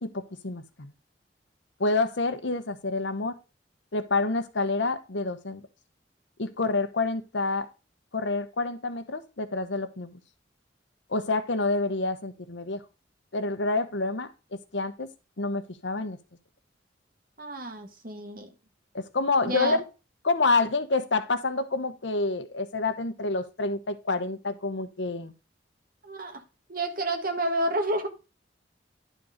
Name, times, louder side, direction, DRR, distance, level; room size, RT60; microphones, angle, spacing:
voice 1, 0.0-0.9 1.8-3.4 3.9-5.6 6.4-7.7 8.1-10.1 11.1-12.8 13.3-14.3 14.7-15.1 15.4-16.2 18.9-19.8 20.2-25.3, left 3 dB, 80° left, 1.0 m, -28 dB
voice 2, 17.4-18.5 19.4-19.8 26.0-26.4 26.7-28.1, right 1 dB, 50° right, 1.8 m, -30 dB
11.0 x 4.5 x 5.1 m
head